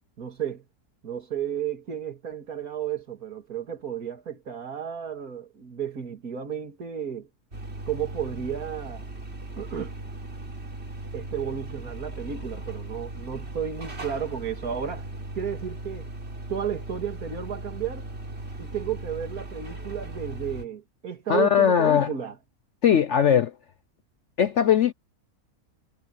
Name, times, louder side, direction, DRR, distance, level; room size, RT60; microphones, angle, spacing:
voice 1, 0.2-0.6 1.0-7.3 7.9-9.0 9.6-9.9 11.1-15.1 15.4-16.1 16.5-18.1 18.6-22.4, right 8 dB, 70° right, 2.7 m, -33 dB
sound 1, 7.5-20.6, right 1 dB, 45° right, 3.7 m, -38 dB
voice 2, 21.3-22.1 22.8-23.5 24.4-24.9, left 9 dB, 55° left, 0.9 m, -19 dB
omnidirectional pair, 1.6 m